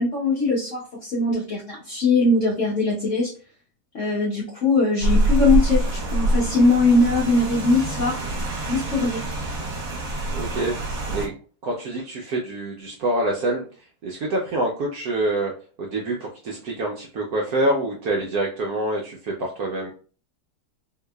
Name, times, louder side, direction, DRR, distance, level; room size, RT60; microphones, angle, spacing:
voice 1, 0.0-3.3 3.9-8.2 8.7-9.3, left 3 dB, 65° left, -4 dB, 0.7 m, -21 dB
Rain, 5.0-11.3, right 1 dB, 45° right, 1.1 m, -25 dB
voice 2, 10.3-11.3 11.6-15.5 15.8-19.9, right 1 dB, 75° right, -1 dB, 0.9 m, -26 dB
3.8 x 2.8 x 2.2 m, 0.39 s
omnidirectional pair, 2.2 m